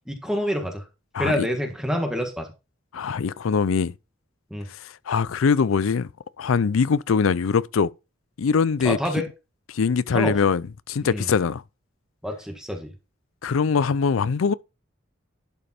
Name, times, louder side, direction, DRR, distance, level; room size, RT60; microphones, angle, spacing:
voice 1, 0.1-0.8 1.2-2.5 4.5-4.7 8.8-9.3 10.1-10.4 11.1-11.3 12.2-12.9, equal, 5° right, 1.5 m, -27 dB
voice 2, 1.1-1.5 2.9-3.9 4.8-6.1 6.4-7.9 8.4-9.0 9.7-11.6 13.4-14.5, left 5 dB, 90° left, 0.5 m, -22 dB
11.5 x 5.1 x 4.3 m
head